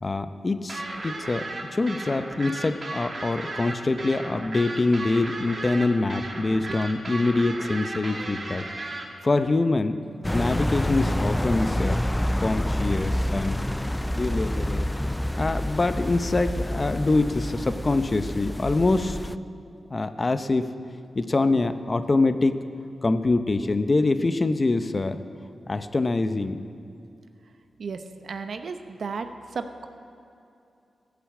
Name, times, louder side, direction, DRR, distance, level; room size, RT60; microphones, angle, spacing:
voice 1, 0.0-1.4 1.7-8.6 9.2-9.9 10.3-12.0 12.4-13.6 14.1-14.9 15.4-19.2 19.9-20.7 21.2-22.6 23.0-25.2 25.7-26.6, left 2 dB, 40° left, 10 dB, 0.7 m, -24 dB
sound 1, 0.7-9.0, right 2 dB, 50° right, 2.1 m, -35 dB
sound 2, 10.2-19.4, left 1 dB, 10° left, 0.3 m, -28 dB
voice 2, 27.8-29.3 29.5-29.9, right 5 dB, 70° right, 8 dB, 0.8 m, -34 dB
15.0 x 6.9 x 8.5 m, 2.7 s
cardioid pair, 60°, 0 cm